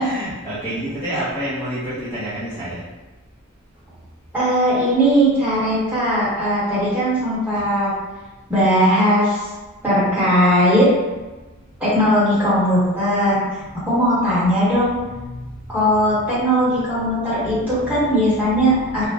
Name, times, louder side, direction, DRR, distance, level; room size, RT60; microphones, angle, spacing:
voice 1, 0.0-2.8 13.8-14.0 15.0-15.9 16.8-18.1 18.5-18.6 18.9-19.1, right 1 dB, 10° left, -15 dB, 1.1 m, -30 dB
voice 2, 4.3-8.0 8.5-9.5 9.8-11.0 11.8-13.5 13.8-15.0 15.7-19.1, equal, 10° right, -11 dB, 1.5 m, -18 dB
3.8 x 2.5 x 3.0 m, 1.2 s
head